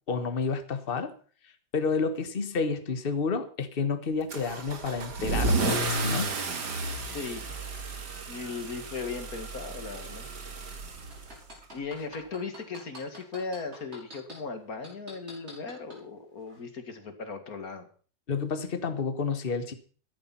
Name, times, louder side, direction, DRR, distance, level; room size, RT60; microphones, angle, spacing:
voice 1, 0.1-1.1 1.7-6.3 18.3-19.7, left 5 dB, 30° left, 9 dB, 1.4 m, -30 dB
Car / Engine starting / Accelerating revving vroom, 4.3-11.6, right 2 dB, 60° right, 2.5 m, -32 dB
voice 2, 7.1-7.5 8.3-10.3 11.7-17.9, left 4 dB, 50° left, 7 dB, 2.4 m, -37 dB
sound 1, 11.1-14.3 14.8-16.0 16.5-16.6, equal, 35° right, 5.9 m, -45 dB
13.5 x 11.0 x 5.9 m, 0.42 s
omnidirectional pair, 2.0 m